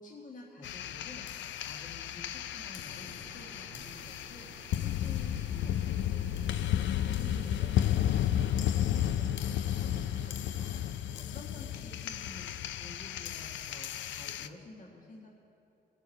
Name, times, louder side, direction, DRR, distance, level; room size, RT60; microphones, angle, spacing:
voice 1, 0.0-15.3, left 2 dB, 40° left, -3 dB, 1.5 m, -51 dB
sound 1, 0.6-14.5, left 11 dB, 70° left, 0.4 m, -33 dB
sound 2, 2.7-10.7, right 5 dB, 90° right, 1.2 m, -54 dB
20.0 x 7.0 x 4.4 m, 2.8 s
cardioid pair, 90°, 20 cm